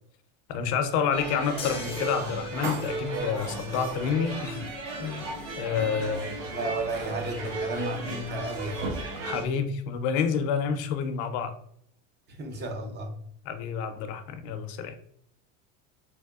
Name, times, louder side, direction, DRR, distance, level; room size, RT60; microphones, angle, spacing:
voice 1, 0.5-4.7 5.0-6.3 9.2-11.5 13.5-14.9, left 6 dB, 70° left, 0.6 m, -29 dB
sound 1, 1.1-9.5, right 3 dB, 55° right, 1.1 m, -35 dB
sound 2, 1.6-4.1 5.8-5.9, left 4 dB, 15° left, 0.6 m, -41 dB
voice 2, 6.5-8.9 12.3-13.2, right 1 dB, 30° right, 0.6 m, -33 dB
3.4 x 3.1 x 2.3 m
supercardioid pair, 125°, 36 cm